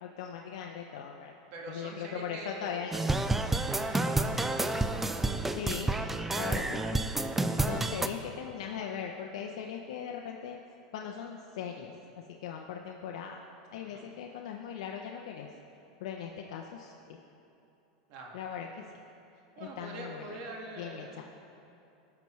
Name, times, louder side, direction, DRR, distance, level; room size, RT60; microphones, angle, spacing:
voice 1, 0.0-1.4 1.7-3.0 5.5-6.0 6.3-7.1 7.6-10.6 10.9-11.9 12.4-13.4 13.7-15.5 16.0-17.2 18.3-18.7 19.6-20.4 20.8-21.2, left 8 dB, 75° left, 1 dB, 0.6 m, -39 dB
voice 2, 1.5-2.9 3.6-4.5 13.8-14.0 18.1-18.3 19.6-21.2, right 2 dB, 55° right, -1 dB, 1.7 m, -44 dB
sound 1, 2.9-8.1, right 2 dB, 5° right, 0.3 m, -29 dB
16.5 x 5.8 x 3.1 m, 2.7 s
supercardioid pair, 145°, 3 cm